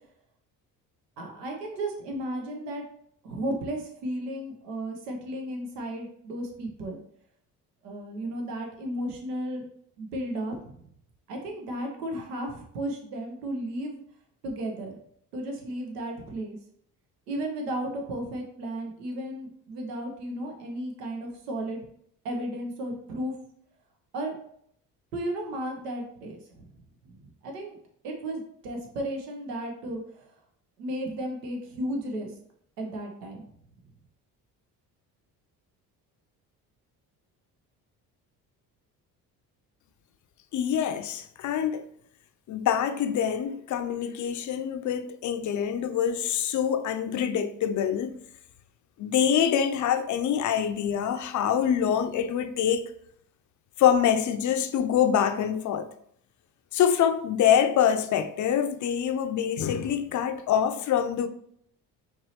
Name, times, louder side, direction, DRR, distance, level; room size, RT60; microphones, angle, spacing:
voice 1, 1.2-2.8 3.2-7.0 7.8-9.6 10.0-10.8 11.3-14.0 14.4-15.0 15.3-16.6 17.3-21.8 22.2-23.4 24.1-24.3 25.1-26.7 27.0-27.8 28.0-30.3 30.8-32.3 32.8-33.4, right 1 dB, 90° right, 0.8 m, -34 dB
voice 2, 40.5-41.8 42.5-48.2 49.0-52.9 53.8-55.9 56.7-61.3, left 9 dB, 40° left, 0.5 m, -25 dB
4.6 x 2.9 x 2.8 m
hypercardioid pair, 55°, 46 cm